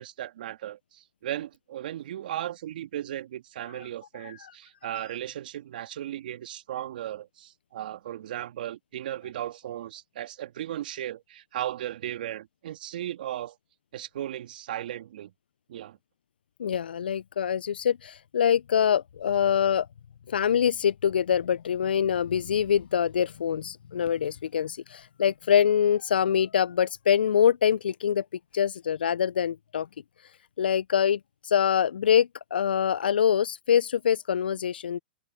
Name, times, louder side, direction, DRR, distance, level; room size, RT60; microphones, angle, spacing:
voice 1, 0.0-13.6 13.9-15.3 15.7-16.0, right 12 dB, 65° right, 2.1 m, -36 dB
voice 2, 4.2-4.5 16.6-19.9 20.3-28.2 28.5-29.9 30.6-35.0, left 8 dB, 80° left, 0.4 m, -24 dB
open air
hypercardioid pair, 115°, 5 cm